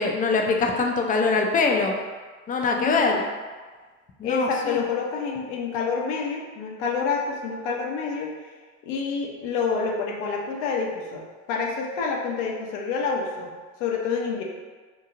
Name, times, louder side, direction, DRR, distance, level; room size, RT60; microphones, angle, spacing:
voice 1, 0.0-1.9 2.5-3.1 4.2-4.8, left 4 dB, 25° left, 2 dB, 0.3 m, -23 dB
voice 2, 2.7-3.2 4.2-8.3 8.8-11.2 11.5-13.5 13.8-14.4, left 5 dB, 70° left, 0 dB, 0.6 m, -28 dB
2.8 x 2.7 x 2.4 m, 1.4 s
hypercardioid pair, 75°, 37 cm